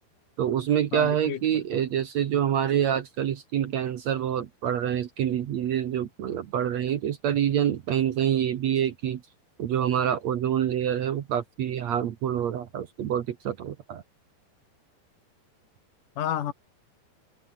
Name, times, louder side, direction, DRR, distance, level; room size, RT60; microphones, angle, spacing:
voice 1, 0.4-9.2 9.6-14.0, right 10 dB, 70° right, 1.6 m, -26 dB
voice 2, 0.9-1.9 16.2-16.5, left 10 dB, 55° left, 2.9 m, -32 dB
open air
omnidirectional pair, 5.0 m